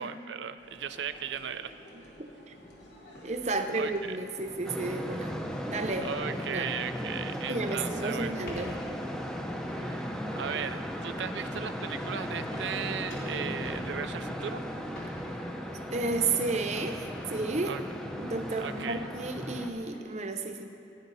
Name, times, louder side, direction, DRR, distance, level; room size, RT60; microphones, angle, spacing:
voice 1, 0.0-1.7 3.5-4.2 6.0-8.4 9.7-14.6 17.7-17.8 18.6-19.1, right 7 dB, 80° right, 11 dB, 0.5 m, -37 dB
sound 1, 0.6-20.0, equal, 85° left, 2.5 m, -51 dB
sound 2, 2.5-2.9 3.1-4.1 4.4-4.7 5.2-5.6 6.0-6.4 6.6-9.3 9.7-10.0 10.6-11.0 11.4-11.6 11.9-12.2 12.5-14.5 15.0-15.3 15.7-16.1 16.3-16.7 17.1-17.4 17.8-18.1 18.3-18.8, left 1 dB, 65° left, 3.1 m, -49 dB
voice 2, 3.2-5.3 5.7-6.8 7.5-8.7 15.9-17.8 18.2-20.6, right 3 dB, 40° right, 6 dB, 0.8 m, -32 dB
sound 3, 4.6-19.7, equal, 5° left, 0.6 m, -36 dB
17.5 x 10.5 x 4.1 m, 2.8 s
head